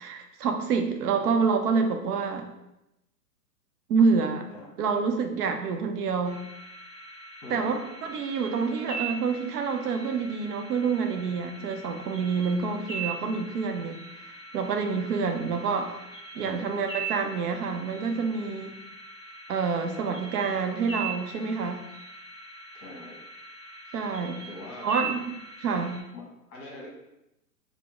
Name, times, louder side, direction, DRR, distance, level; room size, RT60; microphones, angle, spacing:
voice 1, 0.0-2.5 3.9-4.5 4.8-6.4 7.5-14.0 14.5-16.0 16.3-18.8 19.5-21.8 23.9-24.4 24.8-25.3 25.6-26.0, right 5 dB, 70° right, 5 dB, 0.6 m, -27 dB
voice 2, 1.0-1.3 4.5-4.7 7.4-7.8 16.4-16.8 22.7-23.2 24.5-25.0 26.1-26.9, left 2 dB, 25° left, -2 dB, 1.0 m, -43 dB
sound 1, 6.2-26.0, right 4 dB, 5° right, 0.6 m, -41 dB
3.4 x 2.1 x 3.0 m, 0.88 s
hypercardioid pair, 125°, 48 cm